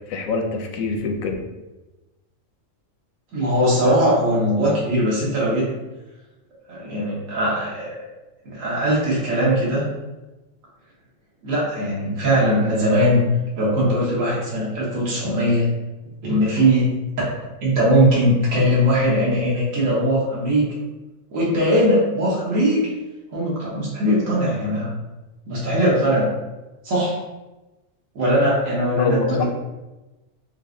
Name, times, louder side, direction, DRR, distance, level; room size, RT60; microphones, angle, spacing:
voice 1, 0.1-1.4 28.9-29.4, left 4 dB, 85° left, 4 dB, 1.0 m, -24 dB
voice 2, 3.3-5.7 6.7-7.9 8.4-9.9 11.4-13.2 13.6-15.7 16.2-16.9 17.6-20.7 21.3-22.8 23.3-24.9 25.5-26.3 26.8-27.2 28.1-29.4, equal, 75° right, -6 dB, 1.5 m, -20 dB
5.6 x 2.1 x 2.6 m, 1.1 s
omnidirectional pair, 1.4 m